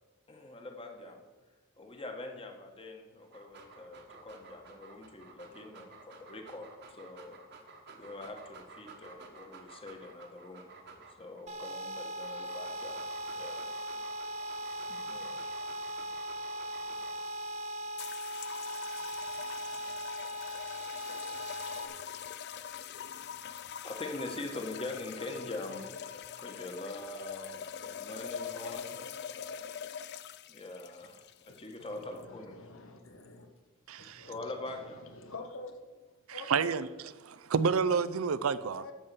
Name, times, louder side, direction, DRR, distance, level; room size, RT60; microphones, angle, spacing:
voice 1, 0.3-1.2 1.8-7.4 7.9-10.7 11.2-13.7 14.9-15.5 23.8-26.1 26.4-29.0 30.5-32.6 34.3-35.0, left 2 dB, 25° left, 4 dB, 1.4 m, -43 dB
Dog, 3.2-11.4 12.0-17.4, right 3 dB, 55° right, 1.4 m, -52 dB
sound 1, 11.5-21.9, equal, 35° right, 1.1 m, -39 dB
sound 2, 18.0-32.2, left 8 dB, 55° left, 0.4 m, -43 dB
voice 2, 31.8-33.5 34.0-35.9 36.3-36.7 38.8-38.9, left 2 dB, 70° left, 5 dB, 1.3 m, -47 dB
voice 3, 33.9-34.3 36.3-36.9 37.2-38.8, right 5 dB, 85° right, 15 dB, 0.5 m, -29 dB
13.5 x 5.4 x 6.9 m, 1.3 s
head